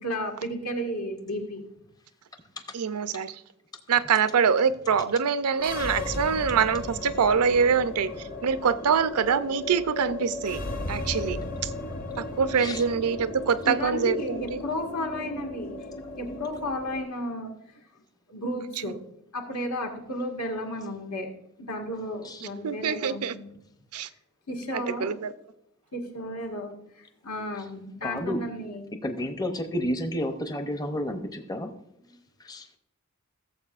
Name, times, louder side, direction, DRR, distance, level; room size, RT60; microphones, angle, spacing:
voice 1, 0.0-1.6 13.6-15.8 16.2-17.5 18.3-19.0 19.3-21.3 21.6-23.5 24.5-25.1 25.9-29.0 32.1-32.2, left 1 dB, 90° left, 1.7 m, -33 dB
voice 2, 2.7-3.4 3.9-8.1 8.4-10.6 10.9-11.7 12.2-14.6 22.6-23.3 23.9-24.1 24.7-25.3, right 6 dB, 85° right, 0.5 m, -25 dB
sound 1, 5.5-17.0, left 2 dB, 40° left, 0.9 m, -36 dB
voice 3, 28.0-28.4 29.0-31.7 32.4-32.7, left 1 dB, 15° left, 0.6 m, -31 dB
16.5 x 7.2 x 2.4 m
head